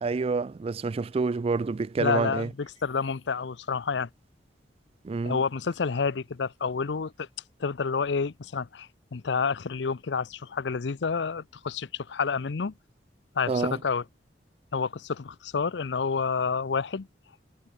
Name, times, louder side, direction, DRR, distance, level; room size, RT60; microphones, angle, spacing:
voice 1, 0.0-2.5 5.0-5.4 13.5-13.8, right 4 dB, 35° right, 0.3 m, -28 dB
voice 2, 2.0-4.1 5.2-7.3 7.6-12.7 13.4-14.0 14.7-17.1, left 5 dB, 80° left, 0.6 m, -29 dB
head